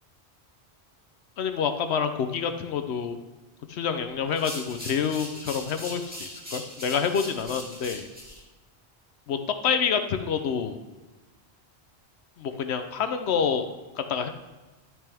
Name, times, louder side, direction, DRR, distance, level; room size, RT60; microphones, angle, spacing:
voice 1, 1.4-3.2 3.7-8.1 9.3-9.4 9.6-10.8 12.4-13.7 14.0-14.3, left 7 dB, 80° left, 8 dB, 0.9 m, -27 dB
sound 1, 4.3-8.4, equal, 10° right, 2.1 m, -40 dB
11.0 x 6.0 x 3.4 m, 1.2 s
omnidirectional pair, 1.1 m